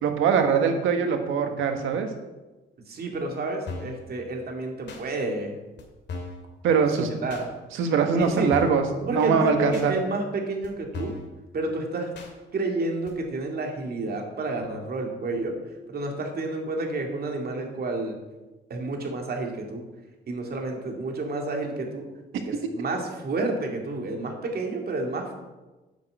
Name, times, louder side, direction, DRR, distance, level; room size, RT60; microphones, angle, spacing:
voice 1, 0.0-2.1 6.6-7.2 7.8-8.8 9.1-9.9, right 6 dB, 85° right, 6 dB, 1.5 m, -22 dB
voice 2, 2.9-5.6 6.9-7.5 8.2-8.5 9.1-11.1 11.5-12.1 12.5-15.6 15.9-18.1 18.7-19.8 20.3-22.1 22.3-25.3, right 2 dB, 50° right, 2 dB, 2.5 m, -30 dB
sound 1, 3.7-4.0 4.9-5.0 5.8-5.9 6.1-6.4 7.3-7.5 8.2-8.3 8.5-8.9 9.7-9.9 10.6-10.7 10.9-11.3 12.1-12.3 13.1-13.2, left 3 dB, 60° left, 2.3 m, -36 dB
9.2 x 6.3 x 8.0 m, 1.1 s
cardioid pair, 90°, 20 cm